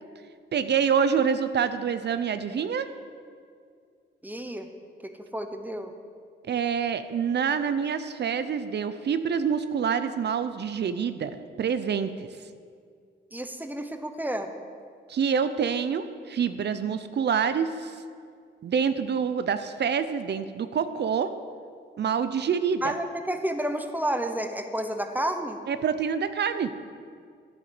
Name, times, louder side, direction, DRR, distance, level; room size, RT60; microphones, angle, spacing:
voice 1, 0.5-2.9 6.5-12.1 15.1-18.0 18.6-21.3 22.0-22.9 25.7-26.7, right 7 dB, 60° right, 11 dB, 0.7 m, -26 dB
voice 2, 4.2-4.7 5.0-5.9 13.3-14.5 22.8-25.6, right 1 dB, 10° right, 7 dB, 1.0 m, -31 dB
12.0 x 10.5 x 7.7 m, 2.2 s
wide cardioid pair, 135°, 19 cm